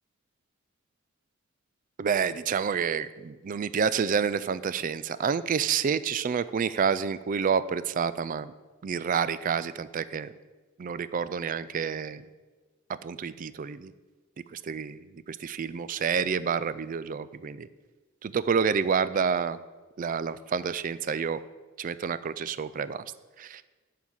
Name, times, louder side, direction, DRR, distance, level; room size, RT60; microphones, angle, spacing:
voice 1, 2.0-8.5 8.8-10.3 10.8-12.2 13.0-13.9 14.5-17.7 18.2-19.6 20.0-21.4 21.8-23.1 23.4-23.6, right 6 dB, 40° right, 15 dB, 0.3 m, -29 dB
11.0 x 3.9 x 7.1 m, 1.3 s
head